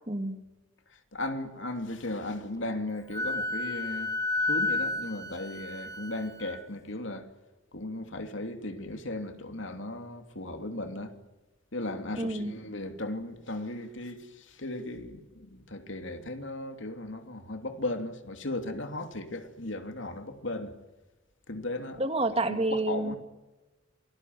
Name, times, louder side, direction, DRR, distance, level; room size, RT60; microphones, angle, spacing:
voice 1, 0.1-0.4 12.2-12.5 22.0-23.2, right 2 dB, 30° right, 2.0 m, -29 dB
voice 2, 0.9-7.3 7.7-11.2 11.7-20.7 21.5-22.2 22.4-23.2, left 2 dB, 65° left, 3.0 m, -36 dB
Wind instrument woodwind instrument, 3.1-6.6, left 2 dB, 15° left, 2.0 m, -31 dB
28.0 x 20.0 x 9.5 m
head